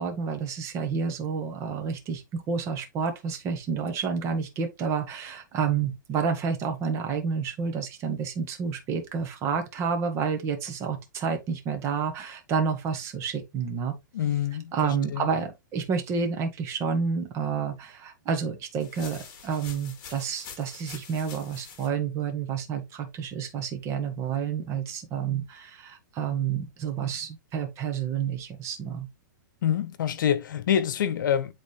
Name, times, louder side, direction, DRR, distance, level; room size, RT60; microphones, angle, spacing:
voice 1, 0.0-13.9 14.7-29.1, right 6 dB, 25° right, 1.6 m, -29 dB
voice 2, 14.1-15.3 29.6-31.5, left 9 dB, 70° left, 1.0 m, -26 dB
sound 1, 18.8-21.9, left 6 dB, 35° left, 2.1 m, -45 dB
8.2 x 3.7 x 3.3 m
hypercardioid pair, 150°, 11 cm